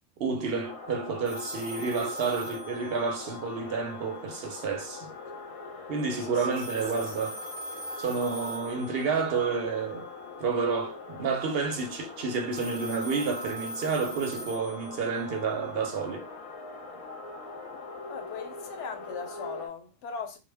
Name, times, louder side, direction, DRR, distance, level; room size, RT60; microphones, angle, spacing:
voice 1, 0.2-5.1 5.9-7.4 8.0-10.1 10.4-16.3, right 5 dB, 60° right, 0.8 m, -30 dB
sound 1, 0.6-19.7, left 3 dB, 40° left, 0.6 m, -43 dB
sound 2, 1.2-3.6 6.5-9.4 12.5-15.4, equal, 15° right, 0.6 m, -40 dB
voice 2, 6.2-6.7 18.1-20.4, left 6 dB, 80° left, 0.9 m, -39 dB
2.2 x 2.2 x 3.3 m
omnidirectional pair, 1.2 m